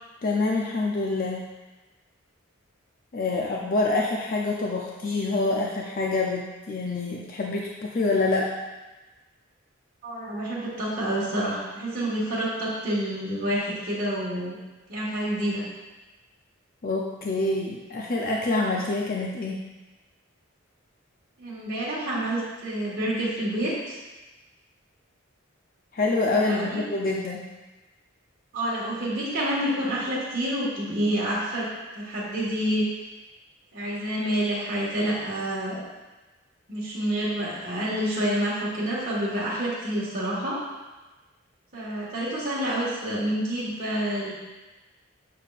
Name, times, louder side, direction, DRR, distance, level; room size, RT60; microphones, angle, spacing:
voice 1, 0.2-1.4 3.1-8.5 16.8-19.6 25.9-27.4, left 2 dB, 45° left, -1 dB, 0.5 m, -26 dB
voice 2, 10.0-14.6 14.9-15.6 21.4-24.0 26.3-26.8 28.5-31.7 31.9-32.8 33.7-35.8 36.7-40.6 41.7-44.3, right 1 dB, 40° right, -10 dB, 1.6 m, -28 dB
6.8 x 6.5 x 2.5 m, 1.1 s
head